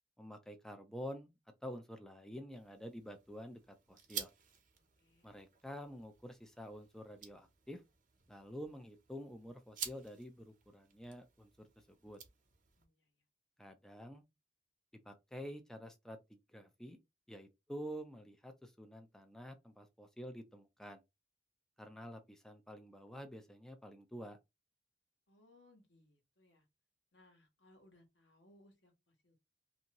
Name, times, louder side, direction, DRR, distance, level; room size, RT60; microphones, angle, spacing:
voice 1, 0.2-1.3 1.6-4.3 5.2-7.8 8.3-12.2 13.6-14.2 15.0-16.2 16.5-17.0 17.3-21.0 21.8-24.4, equal, 5° left, 0.4 m, -49 dB
sound 1, 2.5-12.8, right 8 dB, 50° right, 0.7 m, -51 dB
voice 2, 5.0-5.4 12.8-13.1 25.3-26.6 27.1-29.4, left 1 dB, 80° left, 1.1 m, -66 dB
2.7 x 2.6 x 2.9 m
head